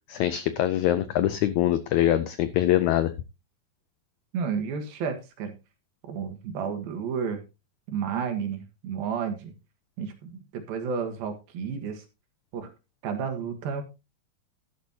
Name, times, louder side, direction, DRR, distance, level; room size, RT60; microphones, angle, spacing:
voice 1, 0.1-3.1, left 12 dB, 90° left, 13 dB, 1.6 m, -23 dB
voice 2, 4.3-5.5 6.1-7.4 7.9-9.5 10.0-12.0 12.5-12.7 13.0-13.8, right 6 dB, 85° right, 6 dB, 3.5 m, -31 dB
12.5 x 11.0 x 2.8 m, 0.28 s
omnidirectional pair, 4.1 m